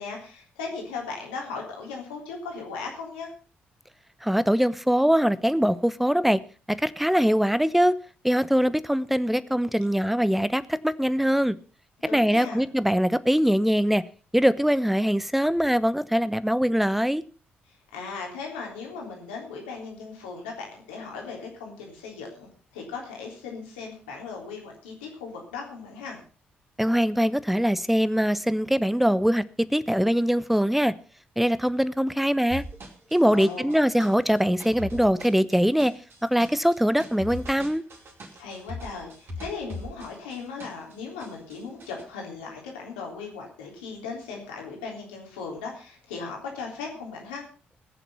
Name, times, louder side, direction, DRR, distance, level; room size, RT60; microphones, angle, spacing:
voice 1, 0.0-3.3 12.0-12.6 17.7-26.2 33.2-33.8 38.4-47.5, left 4 dB, 80° left, 3.5 m, -37 dB
voice 2, 4.2-6.4 6.7-8.0 8.2-11.6 12.1-14.0 14.3-17.2 26.8-30.9 31.4-32.6 33.1-35.9 36.2-37.8, equal, 5° right, 0.9 m, -22 dB
sound 1, 32.5-40.9 41.2-42.0, left 1 dB, 50° right, 4.4 m, -40 dB
20.5 x 7.1 x 5.5 m
figure-of-eight pair, 40°, 5 cm